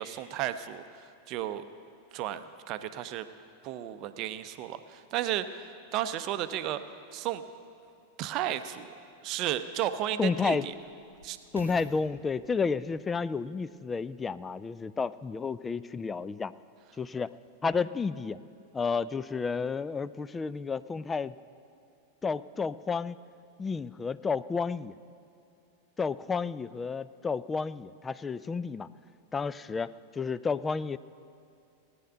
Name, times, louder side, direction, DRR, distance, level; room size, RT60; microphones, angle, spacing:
voice 1, 0.0-1.6 2.1-3.3 3.6-5.7 5.9-6.8 7.1-7.4 8.2-8.9 9.2-10.7 11.2-11.4, right 12 dB, 40° right, 11 dB, 0.6 m, -33 dB
sound 1, 9.6-14.6 15.3-15.4, equal, 90° left, 1.2 m, -52 dB
voice 2, 10.2-10.7 11.5-16.5 17.0-17.3 17.6-18.4 18.7-21.4 22.2-23.2 23.6-24.9 26.0-28.9 29.3-31.0, left 5 dB, 15° left, 16 dB, 0.3 m, -31 dB
17.5 x 9.5 x 5.6 m, 2.6 s
figure-of-eight pair, 90°, 0 cm